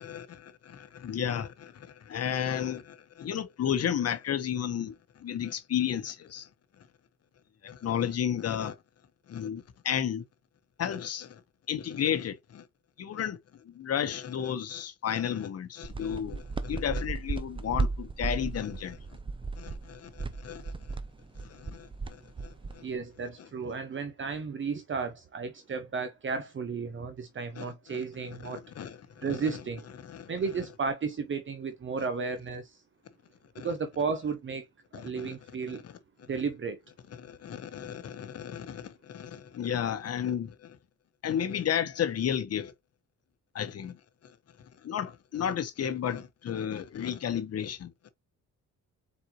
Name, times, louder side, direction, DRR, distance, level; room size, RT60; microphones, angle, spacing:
voice 1, 0.0-6.5 7.6-8.8 9.3-10.2 10.8-11.4 11.7-12.6 13.0-13.4 13.6-19.0 19.6-20.7 21.4-22.8 27.6-28.0 28.4-29.6 30.0-30.3 33.5-33.7 34.9-35.3 35.8-35.9 37.1-40.8 41.2-42.7 43.5-44.0 44.8-47.9, left 9 dB, 55° left, 1.0 m, -33 dB
sound 1, 15.8-23.0, right 4 dB, 15° right, 0.6 m, -35 dB
voice 2, 22.8-28.6 29.2-29.9 30.3-32.8 33.6-34.7 34.9-35.8 36.3-36.8, right 5 dB, 40° right, 0.9 m, -33 dB
4.3 x 4.1 x 3.0 m
cardioid pair, 90°, 30 cm